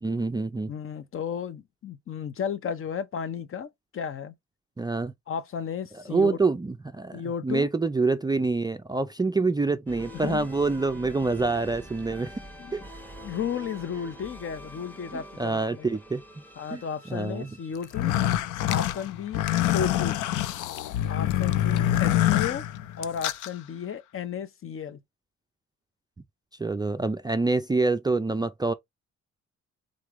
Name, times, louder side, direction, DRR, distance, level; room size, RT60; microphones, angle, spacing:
voice 1, 0.0-0.7 4.8-5.1 6.1-12.3 12.7-12.8 15.1-16.4 16.7-16.8 17.1-17.5 26.6-28.7, right 3 dB, 15° right, 0.4 m, -26 dB
voice 2, 0.7-4.3 5.3-6.4 7.1-7.7 10.1-10.5 12.6-12.7 13.2-16.0 16.6-18.1 18.6-19.4 19.7-20.2 21.1-22.6 23.0-25.0, left 7 dB, 45° left, 0.7 m, -34 dB
sound 1, 9.9-18.3, equal, 5° left, 1.1 m, -45 dB
sound 2, 17.8-23.5, left 13 dB, 85° left, 0.5 m, -25 dB
3.8 x 3.2 x 3.6 m
cardioid pair, 90°, 30 cm